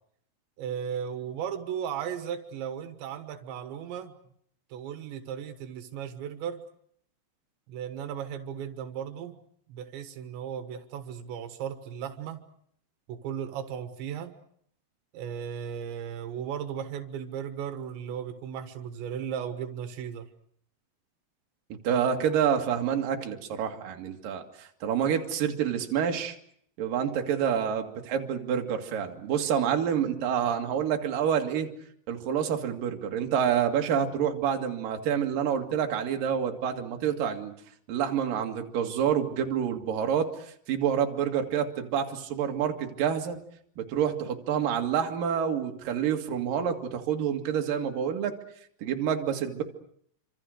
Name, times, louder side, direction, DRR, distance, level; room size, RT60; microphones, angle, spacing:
voice 1, 0.6-4.1 4.7-6.6 7.7-9.4 9.7-12.4 13.1-14.3 15.1-20.3, right 8 dB, 85° right, 8 dB, 3.7 m, -36 dB
voice 2, 21.8-26.4 26.8-31.7 32.1-37.5 37.9-40.3 40.7-43.4 43.8-48.3 48.8-49.6, right 8 dB, 55° right, 4 dB, 3.5 m, -28 dB
28.0 x 26.0 x 6.6 m, 0.68 s
omnidirectional pair, 5.0 m